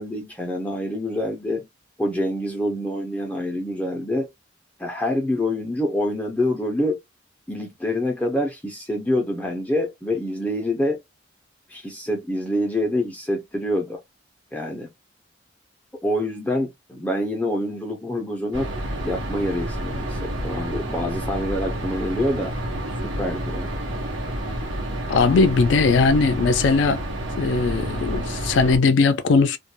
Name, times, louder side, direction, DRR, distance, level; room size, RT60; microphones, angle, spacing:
voice 1, 0.0-1.7 2.0-4.3 4.8-7.0 7.5-11.0 11.7-14.0 14.5-14.9 16.0-18.7 19.0-22.5 22.9-23.7, left 1 dB, 10° left, 0.4 m, -26 dB
sound 1, 18.5-28.8, right 1 dB, 90° right, 0.9 m, -29 dB
voice 2, 25.1-27.0 27.4-29.6, left 4 dB, 75° left, 0.3 m, -19 dB
2.2 x 2.1 x 2.9 m
head